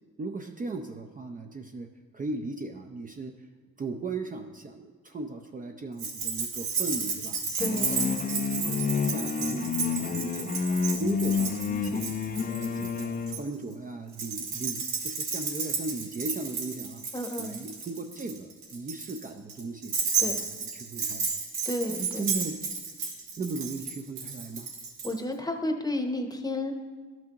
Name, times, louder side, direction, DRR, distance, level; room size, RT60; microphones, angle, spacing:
voice 1, 0.2-1.9 2.1-3.3 3.8-7.4 7.9-12.1 12.5-17.0 17.4-19.9 20.2-20.5 20.7-21.3 21.9-22.6 23.4-24.7, right 3 dB, 25° right, 4 dB, 0.5 m, -37 dB
Keys jangling, 6.0-13.4 14.1-25.1, right 5 dB, 80° right, 1.9 m, -33 dB
sound 1, 7.6-13.5, left 5 dB, 30° left, 0.5 m, -29 dB
voice 2, 7.6-8.0 17.1-17.6 20.2-20.4 21.6-22.3 25.0-26.7, left 1 dB, 15° left, 4 dB, 0.9 m, -31 dB
12.0 x 6.0 x 2.9 m, 1.5 s
cardioid pair, 90°, 30 cm